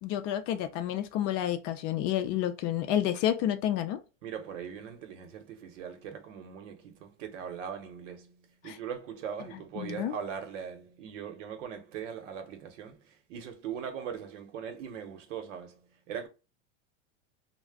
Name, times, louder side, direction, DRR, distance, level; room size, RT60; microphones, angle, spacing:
voice 1, 0.0-4.0 8.7-8.8 9.8-10.2, left 11 dB, 45° left, 0.4 m, -30 dB
voice 2, 4.2-16.3, right 8 dB, 80° right, 0.9 m, -40 dB
2.4 x 2.1 x 3.4 m
supercardioid pair, 120°, 37 cm